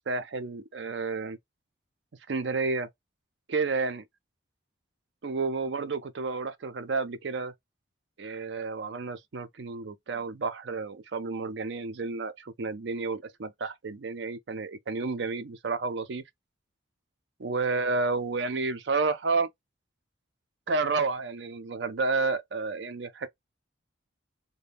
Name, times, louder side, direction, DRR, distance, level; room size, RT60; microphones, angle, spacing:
voice 1, 0.1-1.4 2.3-2.9 3.5-4.1 5.2-7.5 8.2-16.2 17.4-19.5 20.7-23.3, right 4 dB, 65° right, 0.5 m, -31 dB
2.6 x 2.2 x 3.3 m
head